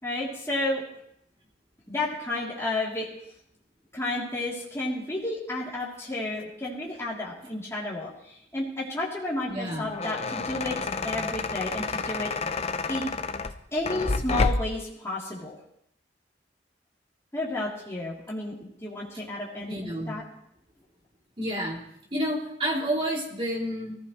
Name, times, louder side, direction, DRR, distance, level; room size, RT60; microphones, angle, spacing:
voice 1, 0.0-0.8 1.9-3.1 3.9-12.3 12.9-13.1 13.7-15.5 17.3-20.2, left 2 dB, 15° left, -6 dB, 3.2 m, -32 dB
voice 2, 9.5-9.9 19.7-20.2 21.4-21.8 22.1-24.0, equal, 30° right, -2 dB, 3.1 m, -29 dB
sound 1, 9.6-14.9, left 3 dB, 35° left, 0.6 m, -29 dB
21.5 x 15.0 x 3.2 m, 0.73 s
head